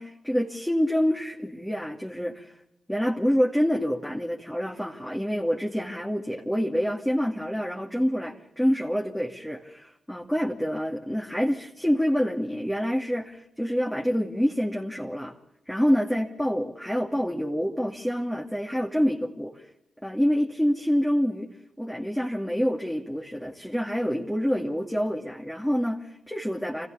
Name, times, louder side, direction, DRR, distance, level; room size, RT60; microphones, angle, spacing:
voice 1, 0.0-2.5 2.9-15.4 15.7-19.6 20.0-21.5 21.8-26.9, equal, 5° left, -1 dB, 2.6 m, -27 dB
25.5 x 15.0 x 7.1 m, 0.78 s
supercardioid pair, 40°, 0 cm